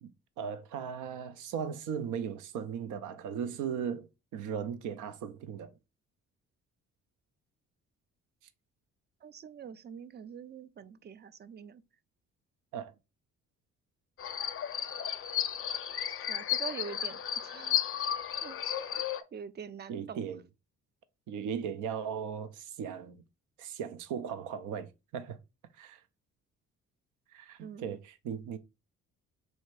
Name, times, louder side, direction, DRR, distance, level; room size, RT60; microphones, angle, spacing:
voice 1, 0.0-5.7 12.7-12.9 19.9-20.4 21.3-23.2 23.6-25.4 25.8-26.0 27.3-28.6, right 7 dB, 85° right, 0.6 m, -37 dB
voice 2, 9.2-11.8 16.3-17.8 18.4-18.6 19.0-19.1 19.3-20.2 27.6-27.9, right 7 dB, 35° right, 0.4 m, -44 dB
sound 1, 14.2-19.2, left 10 dB, 45° left, 0.5 m, -33 dB
3.3 x 2.8 x 4.6 m
cardioid pair, 90°, 30 cm